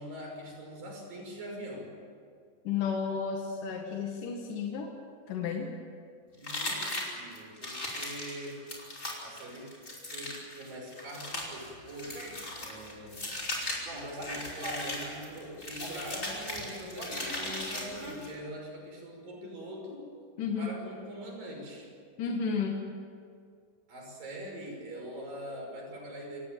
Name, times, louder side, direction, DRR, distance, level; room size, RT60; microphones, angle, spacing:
voice 1, 0.0-1.9 6.3-8.6 9.2-9.8 10.1-13.3 13.7-20.1 20.6-21.9 23.9-26.4, equal, 85° right, 1 dB, 7.7 m, -43 dB
voice 2, 2.6-4.9 5.3-5.7 20.4-20.7 22.2-22.9, left 6 dB, 75° left, 1 dB, 3.4 m, -32 dB
sound 1, 6.4-18.3, left 1 dB, 20° left, 5.3 m, -38 dB
sound 2, 11.3-18.2, right 1 dB, 50° right, 6.7 m, -45 dB
28.5 x 17.5 x 9.2 m, 2.3 s
omnidirectional pair, 3.9 m